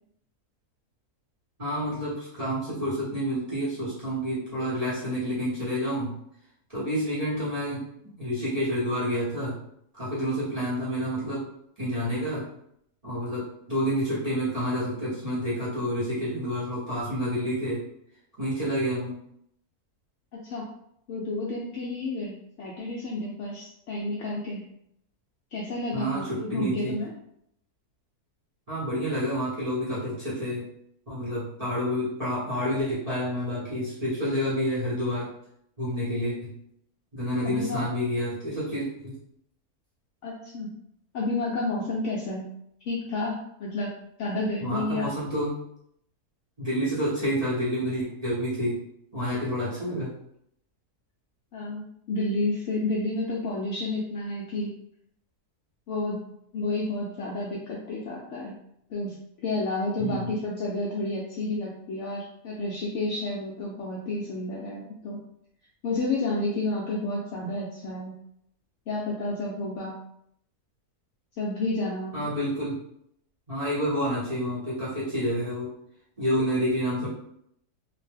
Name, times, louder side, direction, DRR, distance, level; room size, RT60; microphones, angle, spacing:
voice 1, 1.6-6.2 6.7-7.8 8.2-9.6 10.0-11.4 11.8-12.5 13.0-17.8 18.4-19.1 25.9-26.9 28.7-30.7 31.1-35.3 35.8-36.5 37.1-39.2 44.6-45.6 46.6-48.8 49.1-50.1 60.0-60.4 72.1-72.8 73.5-75.7 76.2-77.1, equal, 30° right, -10 dB, 0.8 m, -29 dB
voice 2, 20.3-20.7 21.1-24.6 25.5-27.1 37.4-37.9 40.2-40.7 41.1-42.5 42.8-43.9 44.2-45.1 51.5-54.7 55.9-56.2 56.5-58.5 58.9-65.2 65.8-68.1 68.9-70.0 71.4-72.3, left 2 dB, 70° left, -4 dB, 0.7 m, -30 dB
2.6 x 2.1 x 3.3 m, 0.73 s
omnidirectional pair, 1.7 m